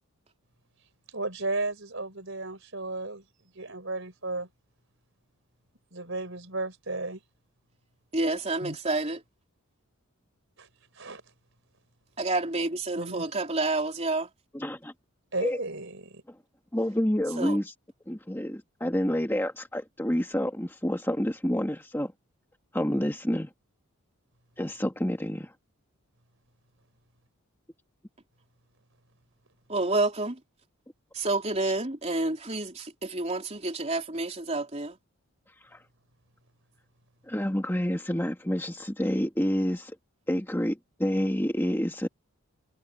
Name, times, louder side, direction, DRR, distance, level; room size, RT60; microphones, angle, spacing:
voice 1, 1.1-3.2 3.5-4.5 5.9-7.2 8.6-8.7 10.6-10.7 11.0-11.2 12.9-13.3 15.3-16.2, right 2 dB, 60° right, 5.0 m, -34 dB
voice 2, 8.1-9.2 12.2-14.3 17.4-17.6 29.7-30.4 31.1-35.0, right 2 dB, 30° right, 3.8 m, -29 dB
voice 3, 14.5-14.9 15.4-15.6 16.7-17.7 18.1-22.1 22.7-23.5 24.6-25.5 31.6-31.7 35.7-35.8 37.3-40.0 40.3-42.1, equal, 10° left, 1.7 m, -28 dB
head